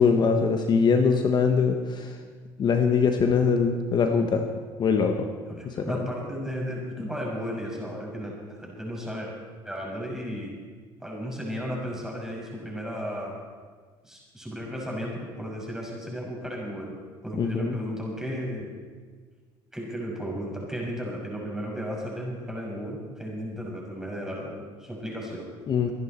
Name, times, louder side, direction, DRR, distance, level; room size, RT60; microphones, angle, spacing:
voice 1, 0.0-2.1 2.6-4.4 4.8-5.3 17.4-17.8 25.7-25.9, left 5 dB, 45° left, 5 dB, 1.3 m, -22 dB
voice 2, 5.5-9.3 9.6-10.5 11.0-13.4 14.0-16.9 17.2-18.8 19.7-25.5, equal, 5° right, -3 dB, 6.1 m, -34 dB
24.0 x 11.0 x 4.4 m, 1.6 s
supercardioid pair, 90°, 11 cm